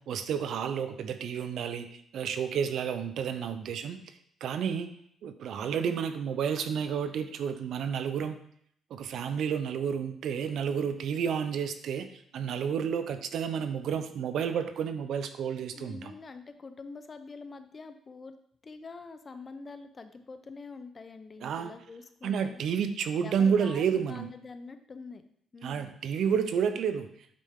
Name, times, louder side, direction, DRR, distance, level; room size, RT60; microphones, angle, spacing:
voice 1, 0.1-4.0 4.4-4.9 5.2-8.4 8.9-12.1 12.3-16.1 21.4-21.7 22.2-24.3 25.6-27.1, right 7 dB, 70° right, 10 dB, 0.6 m, -30 dB
voice 2, 15.7-18.3 18.6-22.6 23.2-25.2 25.5-25.9, left 4 dB, 35° left, 9 dB, 0.7 m, -45 dB
9.0 x 4.2 x 3.7 m, 0.67 s
cardioid pair, 90°, 0 cm